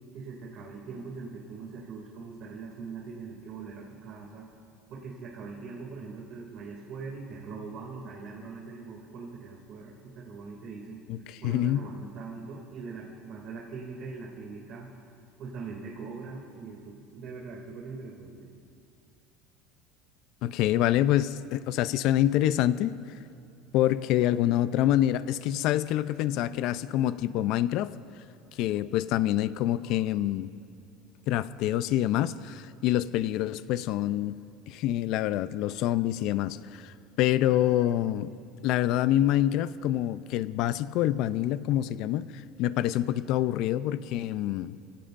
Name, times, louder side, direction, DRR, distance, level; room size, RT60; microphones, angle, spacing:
voice 1, 0.1-4.5 4.9-14.9 15.4-18.5, right 4 dB, 50° right, -2 dB, 2.5 m, -42 dB
voice 2, 11.1-11.9 20.4-22.9 23.7-27.9 28.6-30.5 31.3-34.4 34.7-38.3 38.6-44.8, left 13 dB, 60° left, 15 dB, 0.5 m, -26 dB
29.0 x 17.0 x 2.6 m, 2.4 s
supercardioid pair, 135°, 0 cm